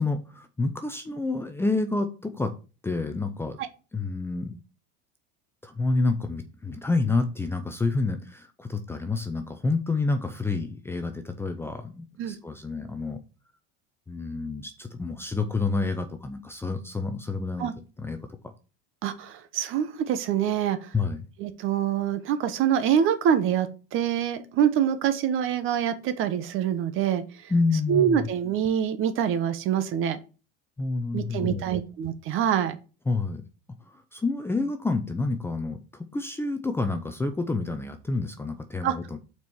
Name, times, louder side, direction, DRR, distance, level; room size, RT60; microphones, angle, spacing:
voice 1, 0.0-2.5 2.8-3.6 3.9-4.6 5.6-13.2 14.1-17.7 18.0-18.2 18.4-18.5 20.9-21.3 27.5-28.3 30.8-31.8 33.1-33.4 33.9-39.2, left 3 dB, 10° left, 6 dB, 0.6 m, -28 dB
voice 2, 19.0-20.9 21.4-27.5 27.9-30.2 31.1-32.8 38.8-38.9, right 9 dB, 45° right, 11 dB, 1.0 m, -25 dB
5.8 x 4.6 x 6.1 m, 0.33 s
supercardioid pair, 140°, 29 cm